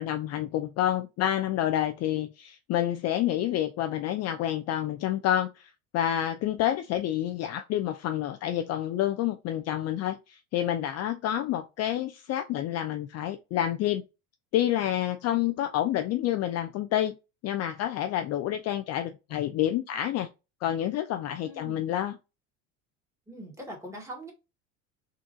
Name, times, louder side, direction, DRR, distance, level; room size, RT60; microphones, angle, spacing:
voice 1, 0.0-14.0 14.5-17.1 17.4-20.3 20.6-22.2, left 12 dB, 45° left, 0.4 m, -28 dB
voice 2, 21.4-21.9 23.3-24.3, right 1 dB, 10° right, 1.7 m, -42 dB
3.7 x 2.4 x 2.6 m
hypercardioid pair, 85°, 38 cm